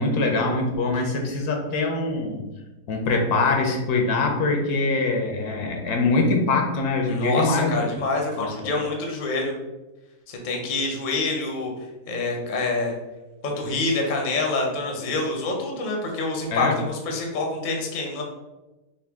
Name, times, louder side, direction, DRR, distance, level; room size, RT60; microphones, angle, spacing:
voice 1, 0.0-2.4 2.9-7.8 8.4-8.7 16.5-16.8, left 3 dB, 75° left, 2 dB, 1.3 m, -23 dB
voice 2, 7.1-9.5 10.3-11.7 12.1-12.9 13.4-18.2, left 3 dB, 45° left, 1 dB, 0.7 m, -26 dB
5.4 x 2.2 x 3.4 m, 1.1 s
omnidirectional pair, 1.7 m